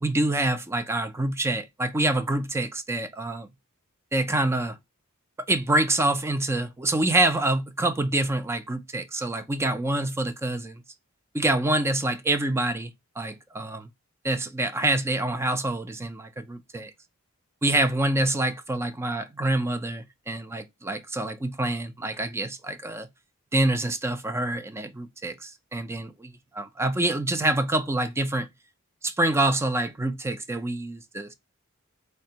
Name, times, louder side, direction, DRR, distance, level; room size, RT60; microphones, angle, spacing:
voice 1, 0.0-3.5 4.1-4.8 5.5-10.8 11.3-13.9 14.2-16.9 17.6-23.1 23.5-26.1 26.5-28.5 29.0-31.3, right 2 dB, 10° right, 0.3 m, -26 dB
4.2 x 2.2 x 2.7 m
head